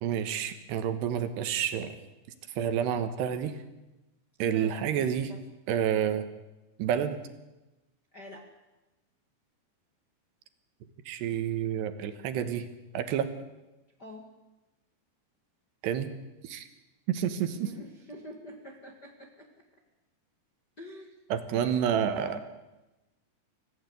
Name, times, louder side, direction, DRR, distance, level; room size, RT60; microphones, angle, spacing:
voice 1, 0.0-2.0 2.6-3.6 4.4-5.3 5.7-6.3 6.8-7.2 11.1-12.7 12.9-13.3 15.8-16.1 16.4-16.7 17.1-17.7 21.3-22.4, right 9 dB, 75° right, 9 dB, 3.3 m, -29 dB
voice 2, 4.4-5.4 8.1-8.5 14.0-14.3 17.5-19.5 20.8-21.2 21.5-22.4, left 1 dB, 35° left, 1 dB, 1.7 m, -46 dB
26.0 x 16.5 x 8.1 m, 1.0 s
omnidirectional pair, 5.2 m